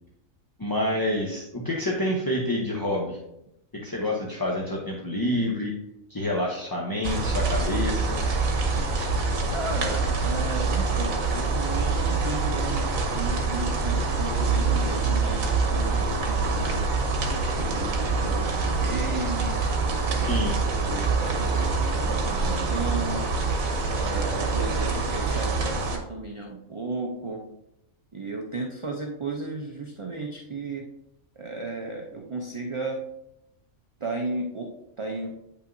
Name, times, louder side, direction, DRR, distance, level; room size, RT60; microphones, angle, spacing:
voice 1, 0.6-3.2 3.7-5.7 6.1-8.2 20.1-20.6, left 1 dB, 25° left, -2 dB, 0.6 m, -28 dB
sound 1, 7.0-26.0, right 3 dB, 75° right, 1.4 m, -25 dB
voice 2, 9.5-16.9 17.5-19.6 20.1-20.5 20.8-21.6 21.9-23.3 23.9-27.4 28.1-30.9 31.4-33.0 34.0-34.7 35.0-35.3, right 3 dB, 35° right, 1 dB, 0.5 m, -34 dB
8.8 x 5.6 x 2.6 m, 0.82 s
omnidirectional pair, 1.4 m